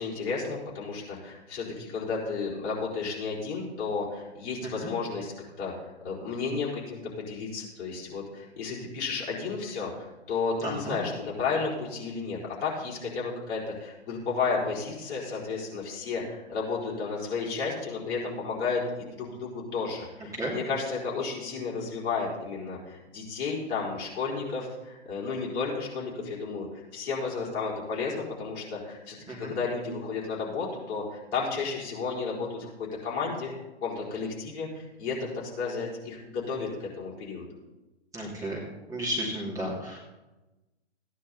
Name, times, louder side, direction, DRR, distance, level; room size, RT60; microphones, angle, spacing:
voice 1, 0.0-5.3 5.6-5.7 6.0-33.5 33.8-37.5, left 4 dB, 30° left, -4 dB, 4.5 m, -32 dB
voice 2, 10.6-11.0 20.3-20.5 29.3-29.5 38.1-38.6 38.9-40.0, equal, 10° right, -5 dB, 2.6 m, -33 dB
15.5 x 10.0 x 4.2 m, 1.1 s
hypercardioid pair, 130°, 34 cm